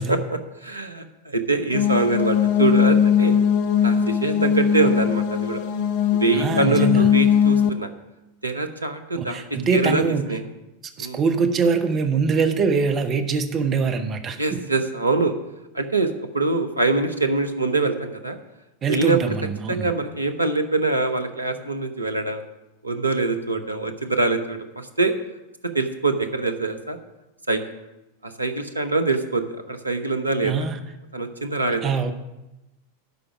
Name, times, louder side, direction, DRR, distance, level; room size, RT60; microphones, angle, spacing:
voice 1, 0.1-3.4 3.8-5.6 6.1-7.9 8.4-9.4 9.7-10.4 11.0-11.2 14.4-15.3 15.7-18.4 18.9-19.3 19.7-22.4 22.8-25.1 25.7-27.0 27.5-27.6 28.2-30.5 31.1-32.1, right 3 dB, 80° right, 8 dB, 0.8 m, -24 dB
sound 1, 1.7-7.7, left 8 dB, 50° left, 0.6 m, -20 dB
voice 2, 6.3-7.1 9.1-10.2 11.0-14.6 18.8-19.9 30.4-30.8 31.8-32.1, right 5 dB, 30° right, 7 dB, 0.9 m, -23 dB
12.0 x 5.0 x 5.9 m, 0.97 s
figure-of-eight pair, 90°, 0 cm